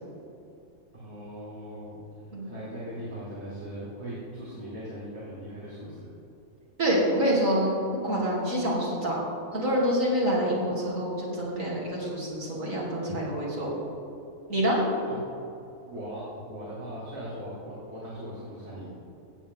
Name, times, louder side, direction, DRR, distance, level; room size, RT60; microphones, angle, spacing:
voice 1, 0.9-2.0 2.4-6.1 15.1-15.2 15.8-18.9, equal, 50° right, -8 dB, 2.6 m, -39 dB
voice 2, 6.8-9.2 9.5-13.7 14.5-14.8, equal, 70° right, -6 dB, 3.6 m, -26 dB
15.5 x 8.5 x 3.8 m, 2.8 s
omnidirectional pair, 1.4 m